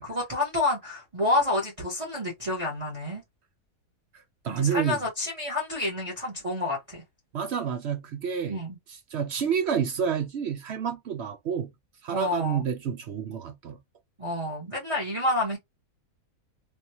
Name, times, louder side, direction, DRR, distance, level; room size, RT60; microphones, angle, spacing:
voice 1, 0.0-3.2 4.5-7.0 8.5-8.8 12.1-12.6 14.2-15.6, left 2 dB, 25° right, 1.2 m, -29 dB
voice 2, 4.4-5.0 7.3-8.6 8.9-11.7 12.0-13.8, right 7 dB, 65° right, 0.7 m, -29 dB
3.4 x 2.5 x 2.8 m
omnidirectional pair, 1.7 m